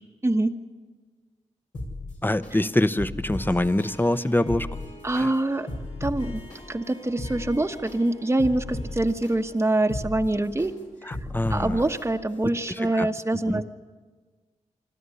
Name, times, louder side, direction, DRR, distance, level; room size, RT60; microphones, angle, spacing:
voice 1, 0.2-0.5 5.0-5.7 6.0-6.4 6.7-10.7 11.0-11.2 11.5-13.6, right 2 dB, 20° right, 4 dB, 1.1 m, -25 dB
sound 1, 1.7-2.5 3.0-3.9 4.3-5.2 5.7-6.6 7.0-8.0 8.4-9.3 9.8-10.7 11.1-12.0 12.5-12.6, left 2 dB, 85° left, 6.0 m, -34 dB
voice 2, 2.2-4.7 5.1-5.3 11.1-11.8 13.0-13.1 13.5-13.6, left 1 dB, 15° left, 13 dB, 0.9 m, -24 dB
Harp, 3.3-11.8, left 1 dB, 65° left, 6.4 m, -49 dB
25.5 x 13.0 x 9.8 m, 1.4 s
cardioid pair, 45°, 13 cm